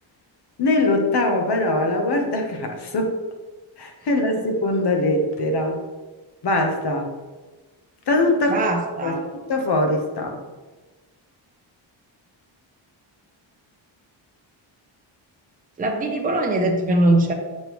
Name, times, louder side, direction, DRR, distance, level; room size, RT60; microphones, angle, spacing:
voice 1, 0.6-3.1 3.8-5.8 6.4-7.1 8.1-8.7 9.0-9.2 9.5-10.4, left 2 dB, 55° left, 3 dB, 1.2 m, -22 dB
voice 2, 8.5-9.2 15.8-17.3, right 1 dB, 20° right, 1 dB, 0.8 m, -21 dB
6.9 x 5.3 x 3.1 m, 1.3 s
wide cardioid pair, 125°, 47 cm